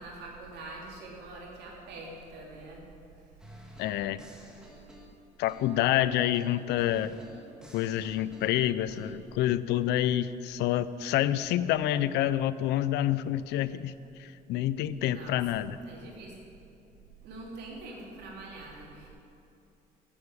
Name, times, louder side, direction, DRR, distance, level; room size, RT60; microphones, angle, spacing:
voice 1, 0.0-2.8 15.1-15.4 15.9-16.4 17.2-19.1, right 2 dB, 80° right, -2 dB, 3.6 m, -44 dB
Reggae Loop, 3.4-5.9 6.3-9.2, equal, 5° right, 2.1 m, -52 dB
voice 2, 3.8-4.2 5.4-7.1 7.7-13.9 14.2-15.8, left 12 dB, 80° left, 15 dB, 0.5 m, -28 dB
10.0 x 8.6 x 9.7 m, 2.8 s
cardioid pair, 110°, 17 cm